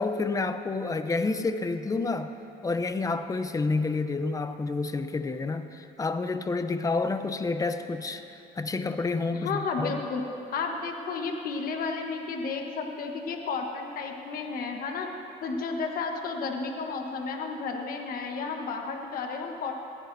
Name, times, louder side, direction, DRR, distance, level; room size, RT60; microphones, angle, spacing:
voice 1, 0.0-2.3 2.6-8.2 8.6-10.0, left 3 dB, 20° left, 9 dB, 0.7 m, -29 dB
voice 2, 9.3-10.2 10.5-15.1 15.4-19.7, left 4 dB, 60° left, 3 dB, 1.3 m, -32 dB
21.0 x 15.5 x 2.7 m, 3.0 s
cardioid pair, 110°, 17 cm